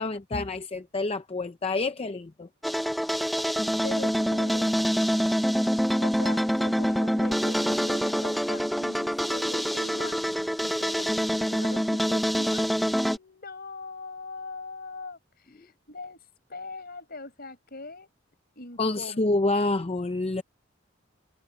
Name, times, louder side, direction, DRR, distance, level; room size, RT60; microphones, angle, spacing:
voice 1, 0.0-2.5 18.8-20.4, left 2 dB, 30° left, 0.6 m, -28 dB
sound 1, 2.6-13.2, equal, ahead, 1.0 m, -26 dB
voice 2, 3.8-5.0 6.0-12.8 13.1-18.1 18.6-19.3, left 3 dB, 50° left, 6.2 m, -41 dB
head